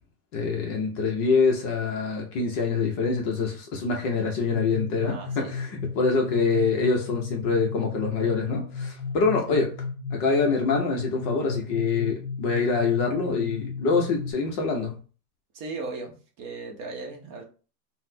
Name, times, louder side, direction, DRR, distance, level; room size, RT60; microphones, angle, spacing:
voice 1, 0.3-9.8 10.1-15.0, left 4 dB, 35° left, 0.5 m, -25 dB
sound 1, 4.5-14.3, left 5 dB, 10° right, 1.7 m, -34 dB
voice 2, 5.0-5.5 6.2-6.6 15.5-17.4, right 3 dB, 35° right, 0.6 m, -38 dB
3.9 x 2.0 x 2.6 m
supercardioid pair, 160°, 46 cm